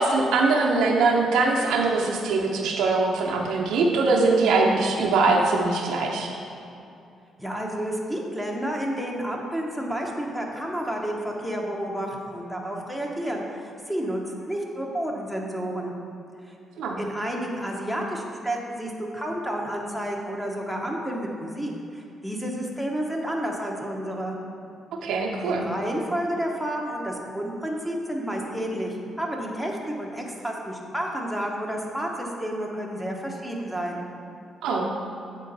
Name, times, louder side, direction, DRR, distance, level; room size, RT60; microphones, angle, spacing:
voice 1, 0.0-6.3 16.8-17.0 25.0-25.6 34.6-34.9, right 3 dB, 85° right, 0 dB, 0.7 m, -22 dB
voice 2, 7.4-15.9 16.5-16.6 17.0-24.4 25.4-34.0, right 1 dB, ahead, -1 dB, 0.9 m, -30 dB
8.1 x 3.8 x 4.0 m, 2.6 s
cardioid pair, 90°, 0 cm